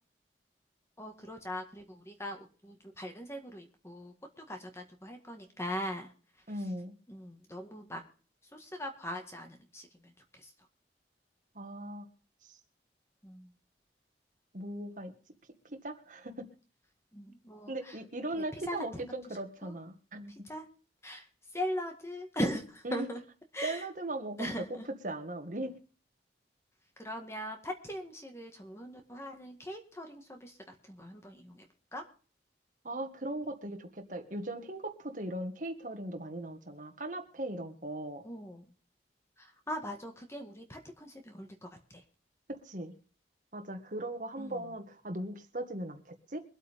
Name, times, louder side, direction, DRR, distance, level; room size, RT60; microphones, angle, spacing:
voice 1, 1.0-6.1 7.1-8.0 8.5-10.5 13.2-13.5 17.1-18.0 18.3-19.1 19.6-19.7 20.4-20.6 21.0-21.3 21.5-23.2 23.5-23.8 24.4-24.8 27.0-31.6 31.9-32.0 38.2-38.7 39.4-42.0 44.4-44.7, equal, 15° left, 4 dB, 1.7 m, -40 dB
voice 2, 6.5-6.9 11.6-12.1 12.5-12.6 14.5-15.1 15.6-16.5 17.7-20.3 22.8-23.1 23.6-24.5 25.0-25.8 32.8-38.2 42.5-42.9 43.5-46.4, right 1 dB, 45° right, 6 dB, 1.8 m, -38 dB
23.5 x 8.3 x 3.6 m, 0.39 s
head